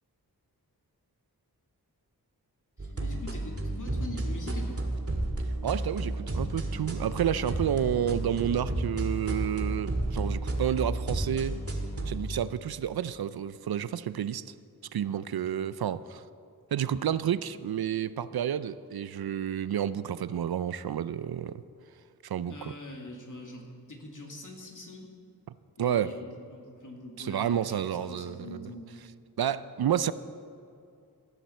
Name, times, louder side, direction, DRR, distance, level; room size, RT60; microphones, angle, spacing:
voice 1, 2.8-4.8 22.5-25.1 25.8-28.9, left 1 dB, 50° left, 0 dB, 2.3 m, -43 dB
sound 1, 2.8-12.2, right 1 dB, 40° right, 1.9 m, -32 dB
voice 2, 5.6-11.6 12.1-14.5 14.9-16.2 16.7-21.6 22.2-22.7 25.8-26.1 27.2-28.7 29.4-30.1, right 9 dB, 70° right, 15 dB, 0.5 m, -30 dB
15.5 x 7.4 x 6.9 m, 2.5 s
cardioid pair, 50°, 38 cm